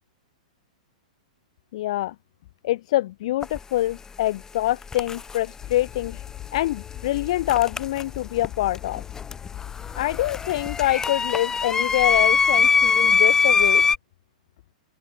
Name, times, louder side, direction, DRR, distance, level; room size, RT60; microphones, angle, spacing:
voice 1, 1.7-2.1 2.6-6.2 6.5-9.0 10.0-13.8, left 15 dB, 55° left, 2.8 m, -25 dB
sound 1, 3.4-3.6 4.8-5.4 7.5-8.5 8.7-14.0, left 5 dB, 15° left, 1.0 m, -22 dB
Train, 5.6-10.9, left 13 dB, 30° left, 7.2 m, -39 dB
open air
hypercardioid pair, 115°, 4 cm